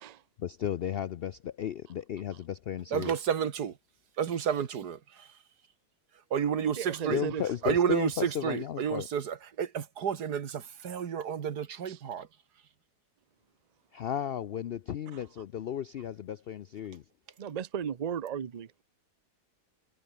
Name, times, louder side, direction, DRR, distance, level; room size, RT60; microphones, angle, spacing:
voice 1, 0.4-3.1 7.1-9.1 13.9-17.0, left 9 dB, 75° left, 0.5 m, -34 dB
voice 2, 2.9-3.8 4.2-5.3 6.3-7.2 7.6-12.3, right 8 dB, 85° right, 2.0 m, -31 dB
voice 3, 6.7-7.4 11.9-12.0 15.1-15.2 17.4-18.7, right 8 dB, 40° right, 0.6 m, -35 dB
omnidirectional pair, 1.7 m